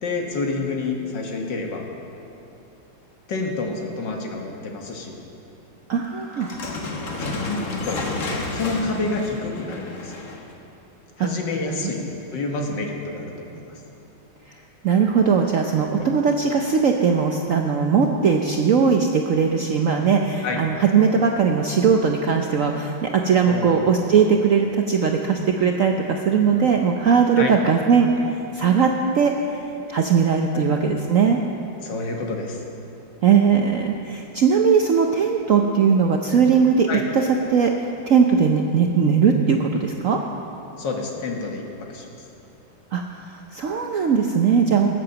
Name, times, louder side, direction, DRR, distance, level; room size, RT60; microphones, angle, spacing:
voice 1, 0.0-1.8 3.3-5.2 7.2-8.0 8.5-10.3 11.2-12.0 12.3-13.8 16.0-16.1 20.4-20.6 23.5-24.1 27.4-27.5 30.5-30.7 31.8-32.6 36.9-37.0 40.8-42.1, left 3 dB, 60° left, 1 dB, 2.0 m, -28 dB
voice 2, 5.9-6.5 11.2-11.3 14.8-28.1 28.5-29.3 29.9-31.4 33.2-36.9 37.1-37.2 37.5-37.7 38.1-40.2 42.9-43.0 43.5-44.9, right 6 dB, 75° right, 2 dB, 0.7 m, -19 dB
sound 1, 6.3-10.5, left 2 dB, 45° left, 1.5 m, -31 dB
14.0 x 8.8 x 6.8 m, 2.8 s
omnidirectional pair, 2.2 m